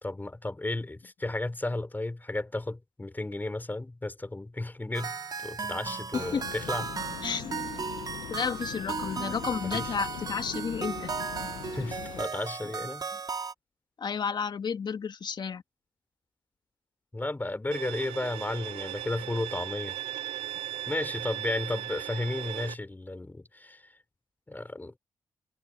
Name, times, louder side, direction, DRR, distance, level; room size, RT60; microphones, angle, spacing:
voice 1, 0.0-6.9 9.7-10.0 11.7-13.1 17.1-20.0 20.9-23.8 24.5-24.9, left 2 dB, 20° left, 4.5 m, -33 dB
sound 1, 4.9-13.5, right 5 dB, 50° right, 2.4 m, -36 dB
voice 2, 6.1-6.4 7.2-7.8 8.3-11.1 14.0-15.6, left 6 dB, 55° left, 2.0 m, -32 dB
sound 2, 6.2-12.3, left 15 dB, 85° left, 0.5 m, -41 dB
Bowed string instrument, 17.7-22.7, right 14 dB, 90° right, 0.4 m, -37 dB
supercardioid pair, 50°, 9 cm